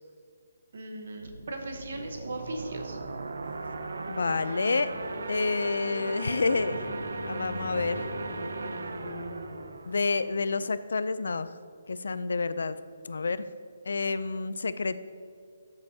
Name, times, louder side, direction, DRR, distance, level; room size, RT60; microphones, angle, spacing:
voice 1, 0.7-3.0, right 2 dB, 50° right, 5 dB, 1.0 m, -38 dB
sound 1, 1.2-10.7, right 3 dB, 70° right, 0.6 m, -38 dB
voice 2, 4.1-4.9 5.3-6.9 7.2-8.1 9.9-11.5 11.9-12.8 13.0-13.4 13.9-15.0, left 4 dB, 75° left, 14 dB, 0.4 m, -29 dB
sound 2, 4.9-9.7, equal, 25° left, 2.2 m, -39 dB
12.5 x 6.7 x 2.8 m, 2.3 s
hypercardioid pair, 180°, 0 cm